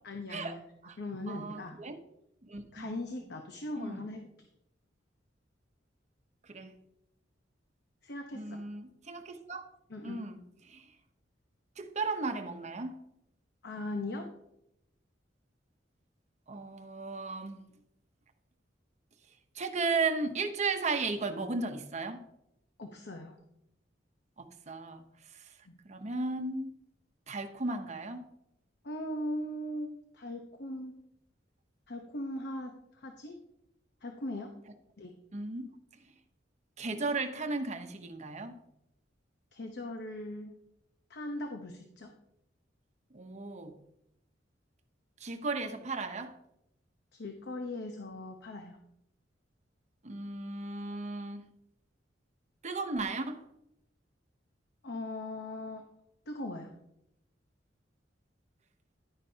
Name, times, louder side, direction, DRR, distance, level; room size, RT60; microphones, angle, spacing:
voice 1, 0.0-0.6 1.0-1.8 2.7-4.5 8.0-8.6 9.9-10.2 13.6-14.3 22.8-23.4 25.7-25.8 28.8-30.9 31.9-33.4 34.0-34.5 35.0-35.1 39.5-40.6 41.1-42.1 47.1-48.8 54.8-55.8 56.3-56.7, left 1 dB, 60° left, 0.9 m, -39 dB
voice 2, 1.3-2.0 2.4-2.9 3.8-4.1 6.5-6.7 8.3-9.7 10.0-10.4 10.7-10.8 11.8-12.9 16.5-17.6 19.5-22.2 24.4-25.0 25.8-26.8 27.3-28.2 35.3-35.7 36.8-38.5 43.1-43.7 45.2-46.3 50.0-51.4 52.6-53.4, right 3 dB, 40° right, 0.9 m, -35 dB
11.0 x 9.8 x 2.8 m
head